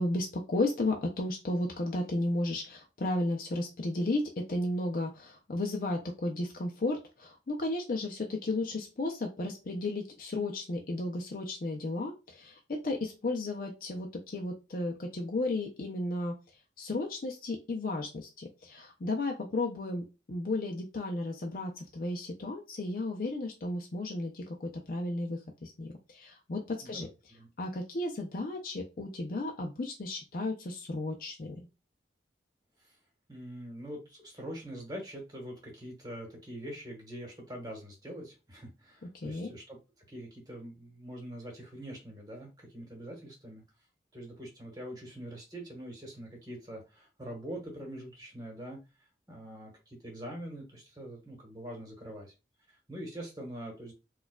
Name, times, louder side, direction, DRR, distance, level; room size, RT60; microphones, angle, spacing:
voice 1, 0.0-16.3 16.8-27.1 27.6-31.6 39.1-39.5, left 2 dB, 50° left, 2 dB, 0.5 m, -34 dB
voice 2, 26.8-27.5 32.8-33.0 33.3-43.6 44.1-48.8 49.3-52.3 52.7-53.9, equal, 20° right, 0 dB, 1.1 m, -44 dB
4.4 x 2.3 x 2.2 m, 0.28 s
head